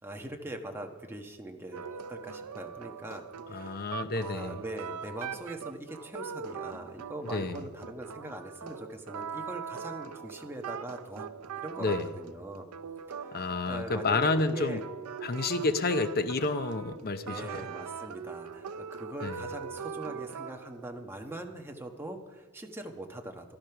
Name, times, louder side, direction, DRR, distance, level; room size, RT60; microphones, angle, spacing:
voice 1, 0.0-11.3 11.6-12.7 13.1-14.8 16.8-23.6, right 1 dB, 10° right, 2 dB, 1.2 m, -42 dB
sound 1, 1.7-20.9, right 6 dB, 85° right, 0.6 m, -41 dB
voice 2, 3.5-4.6 7.3-7.6 11.8-12.1 13.3-14.8 15.2-17.4 19.2-19.3, left 3 dB, 45° left, 10 dB, 0.8 m, -29 dB
14.5 x 12.0 x 5.9 m, 1.3 s
head